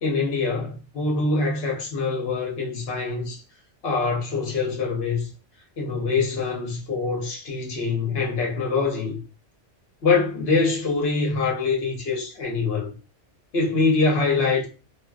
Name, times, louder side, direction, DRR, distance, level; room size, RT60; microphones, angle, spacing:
voice 1, 0.0-3.4 3.8-5.3 5.8-9.2 10.0-12.9 13.5-14.7, left 4 dB, 55° left, 1.1 m, -24 dB
3.0 x 2.8 x 2.3 m
omnidirectional pair, 1.2 m